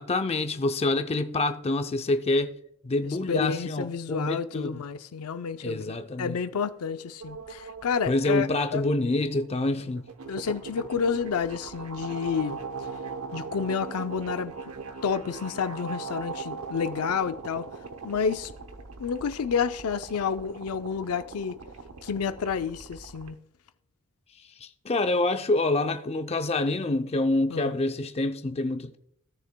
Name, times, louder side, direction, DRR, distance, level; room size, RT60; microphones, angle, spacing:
voice 1, 0.0-2.5 2.8-4.8 5.6-6.4 8.1-10.1 24.6-29.0, left 2 dB, 30° left, 0.5 m, -26 dB
voice 2, 3.3-8.8 10.3-12.6 13.3-14.5 15.0-17.7 18.0-18.5 19.0-21.6 22.0-23.4 27.5-27.7, left 6 dB, 90° left, 0.5 m, -30 dB
sound 1, 7.2-23.3, right 4 dB, 85° right, 0.8 m, -40 dB
17.0 x 6.6 x 2.2 m
head